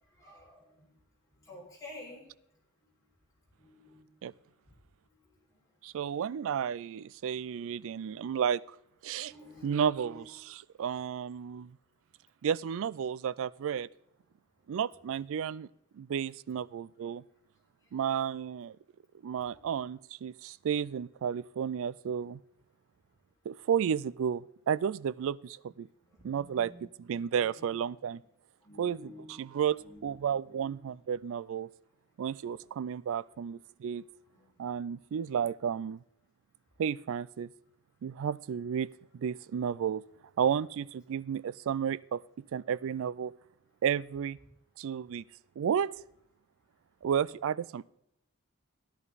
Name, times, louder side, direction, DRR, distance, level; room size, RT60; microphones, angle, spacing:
voice 1, 0.2-0.9 1.4-2.2 3.6-4.1 9.3-10.2 11.1-11.2 17.9-18.0 19.5-19.6 26.1-26.9 27.6-27.7 28.6-29.4 29.7-30.7 32.6-32.7 34.3-34.5, left 2 dB, 15° left, 5.7 m, -51 dB
voice 2, 5.8-8.8 9.0-9.3 9.6-11.8 12.4-13.9 14.7-15.7 15.9-17.2 17.9-18.8 19.2-22.4 23.5-25.9 26.2-28.2 28.8-31.7 32.2-34.0 34.6-36.0 36.8-37.5 38.0-40.0 40.4-43.3 43.8-44.4 44.8-45.2 45.6-45.9 47.0-47.9, right 8 dB, 65° right, 0.3 m, -32 dB
13.5 x 11.5 x 4.0 m
head